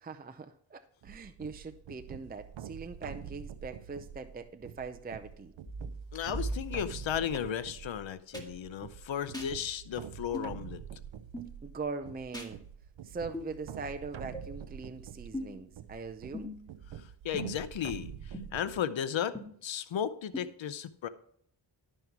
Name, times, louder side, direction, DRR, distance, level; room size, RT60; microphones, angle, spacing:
voice 1, 0.0-5.5 11.6-12.6 13.0-16.5, right 4 dB, 20° right, 0.5 m, -41 dB
sound 1, 1.0-18.8, right 8 dB, 75° right, 0.7 m, -46 dB
sound 2, 5.7-7.4 8.3-8.4 9.3-9.5 10.3-10.5 11.3-11.5 12.3-12.5 13.3-13.5 14.3-14.4 15.3-15.6 16.3-16.7 17.3-17.7 18.3-18.4 19.3-19.4 20.3-20.4, right 1 dB, 10° left, 2.1 m, -39 dB
voice 2, 6.1-10.8 16.9-21.1, left 9 dB, 75° left, 0.7 m, -35 dB
12.5 x 5.5 x 4.6 m
cardioid pair, 80°, 47 cm